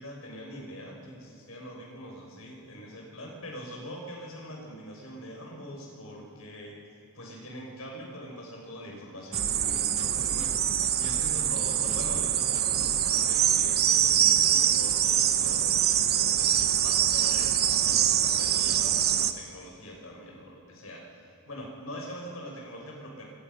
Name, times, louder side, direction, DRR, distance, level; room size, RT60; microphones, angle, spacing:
voice 1, 0.0-10.5 11.0-23.3, equal, 80° left, -1 dB, 6.4 m, -43 dB
sound 1, 9.3-11.4 11.9-12.3 12.5-13.1 13.4-13.5, right 1 dB, 25° right, 1.3 m, -44 dB
sound 2, 9.3-19.3, right 10 dB, 50° right, 1.1 m, -24 dB
26.5 x 25.5 x 5.7 m, 2.6 s
head